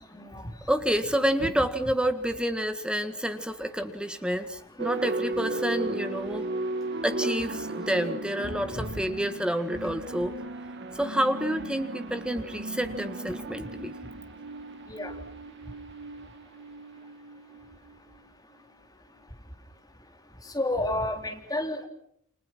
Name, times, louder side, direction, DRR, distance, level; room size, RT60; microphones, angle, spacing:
voice 1, 0.7-6.5 7.0-10.3 10.9-13.9, equal, 5° right, 8 dB, 1.7 m, -29 dB
sound 1, 4.8-18.2, right 2 dB, 55° right, 1.8 m, -36 dB
voice 2, 20.5-21.8, left 1 dB, 15° left, 4 dB, 3.5 m, -30 dB
29.0 x 28.0 x 6.1 m, 0.68 s
head